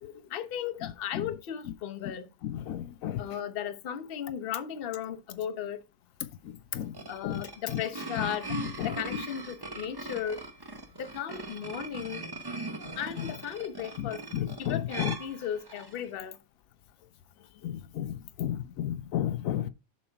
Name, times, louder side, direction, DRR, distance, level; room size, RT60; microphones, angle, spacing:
voice 1, 0.0-2.3 3.2-5.8 7.1-8.5 8.8-10.4 11.0-12.2 13.0-16.4, left 9 dB, 50° left, 0.8 m, -36 dB
voice 2, 2.4-3.2 6.7-6.9 7.2-7.4 7.7-7.8 8.8-8.9 14.3-15.1 17.6-19.7, left 11 dB, 80° left, 1.0 m, -32 dB
sound 1, 6.7-16.0, right 2 dB, 20° right, 0.7 m, -40 dB
7.1 x 5.5 x 4.4 m
omnidirectional pair, 1.5 m